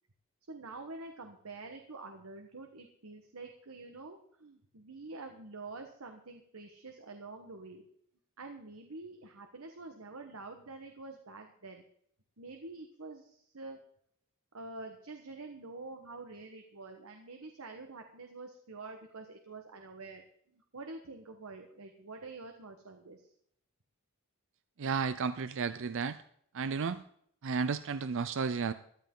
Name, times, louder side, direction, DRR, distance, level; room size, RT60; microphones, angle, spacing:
voice 1, 0.5-7.8 8.4-11.8 12.4-13.8 14.5-20.2 20.5-23.3, right 3 dB, 85° right, 5 dB, 1.3 m, -47 dB
voice 2, 24.8-26.2 26.5-27.0 27.4-28.7, right 5 dB, 65° right, 13 dB, 0.5 m, -32 dB
14.5 x 12.5 x 3.8 m, 0.67 s
head